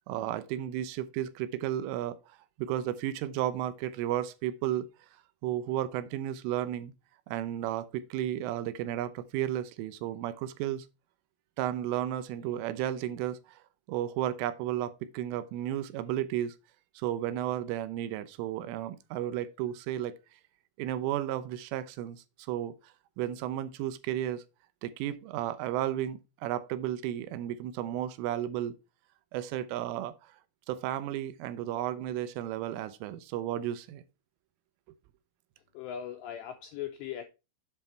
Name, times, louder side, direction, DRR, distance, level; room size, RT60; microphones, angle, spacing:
voice 1, 0.1-4.9 5.4-6.9 7.3-10.9 11.6-13.6 13.9-16.5 17.0-20.2 20.8-22.7 23.2-24.4 24.8-28.8 29.3-30.3 30.7-34.0, right 12 dB, 80° right, 3.1 m, -33 dB
voice 2, 35.7-37.2, left 10 dB, 85° left, 2.5 m, -39 dB
8.2 x 5.6 x 4.4 m
omnidirectional pair, 5.8 m